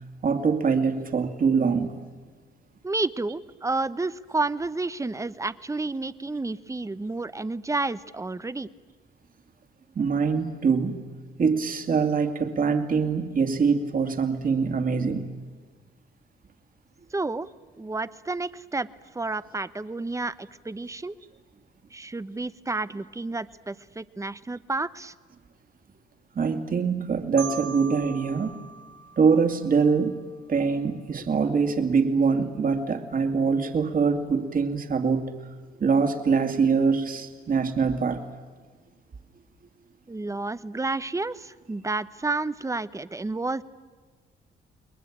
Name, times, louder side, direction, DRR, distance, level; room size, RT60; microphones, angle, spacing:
voice 1, 0.2-2.0 9.9-11.0 11.4-15.3 26.3-28.6 29.2-30.2 30.5-35.3 35.8-38.2, right 5 dB, 45° right, 6 dB, 2.6 m, -24 dB
voice 2, 2.8-8.7 17.1-17.5 17.8-18.9 19.1-21.1 21.9-25.1 40.1-43.6, right 3 dB, 15° right, 15 dB, 0.9 m, -30 dB
Marimba xylophone, 27.4-30.2, right 6 dB, 65° right, 1.0 m, -40 dB
30.0 x 21.5 x 8.8 m, 1.4 s
cardioid pair, 90°, 20 cm